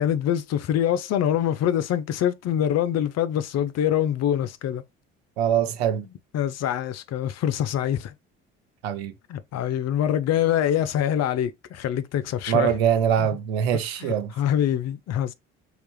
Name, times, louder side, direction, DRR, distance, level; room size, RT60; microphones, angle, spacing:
voice 1, 0.0-4.8 6.3-8.1 9.3-12.7 13.2-13.3 14.0-15.3, left 10 dB, 55° left, 0.7 m, -24 dB
voice 2, 5.4-6.0 8.8-9.1 12.5-14.3, right 9 dB, 85° right, 0.7 m, -23 dB
5.1 x 3.2 x 3.1 m
hypercardioid pair, 60°, 30 cm